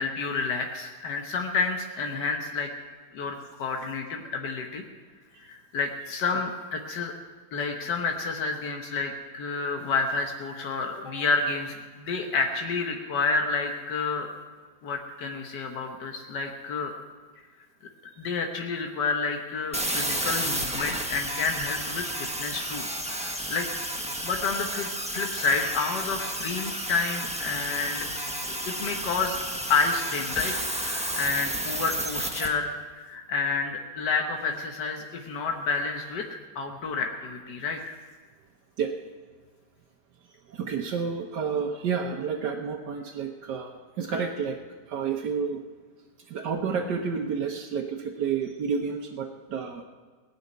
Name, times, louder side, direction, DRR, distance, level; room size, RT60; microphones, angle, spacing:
voice 1, 0.0-2.7 3.1-4.8 5.4-7.1 7.5-14.3 14.8-16.9 18.2-23.7 24.2-28.1 28.7-29.4 29.7-36.3 36.5-38.0, left 4 dB, 90° left, 3 dB, 1.7 m, -29 dB
sound 1, 19.7-32.5, right 1 dB, 5° right, 1.1 m, -32 dB
voice 2, 40.5-44.6 44.9-45.6 46.3-49.8, right 6 dB, 85° right, 0 dB, 1.5 m, -30 dB
18.0 x 6.4 x 9.2 m, 1.4 s
omnidirectional pair, 1.8 m